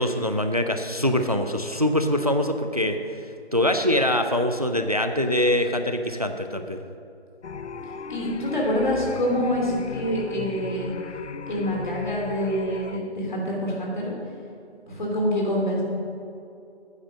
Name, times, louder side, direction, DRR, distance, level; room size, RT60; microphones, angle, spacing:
voice 1, 0.0-3.0 3.5-6.8, left 1 dB, 35° right, 7 dB, 0.4 m, -23 dB
Stereo Ambiance Wave, 7.4-13.0, left 6 dB, 80° left, 0.7 m, -36 dB
voice 2, 7.8-11.0 11.5-14.1 14.9-15.8, equal, 45° left, -2 dB, 2.8 m, -26 dB
9.3 x 9.0 x 6.3 m, 2.7 s
figure-of-eight pair, 175°, 34 cm